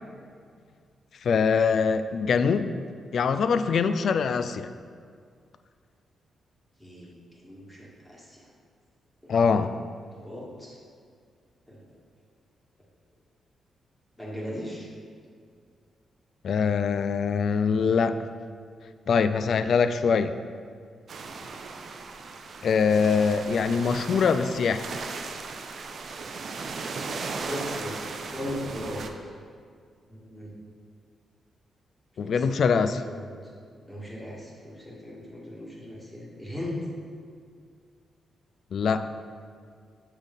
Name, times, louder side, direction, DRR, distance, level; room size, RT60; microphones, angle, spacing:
voice 1, 1.2-2.7 3.1-4.7 9.3-9.7 16.4-18.2 19.1-20.3 22.6-24.8 32.2-33.0 38.7-39.1, left 5 dB, 60° left, 11 dB, 0.3 m, -23 dB
voice 2, 6.8-8.4 9.5-9.6 10.1-10.8 11.7-11.8 14.2-14.9 21.2-21.4 27.4-28.0 28.3-29.1 30.1-30.5 32.2-33.3 33.9-36.8, left 1 dB, 10° left, -4 dB, 1.6 m, -38 dB
sound 1, 21.1-29.1, right 4 dB, 55° right, 0.5 m, -37 dB
6.3 x 3.9 x 5.2 m, 2.1 s
cardioid pair, 100°, 0 cm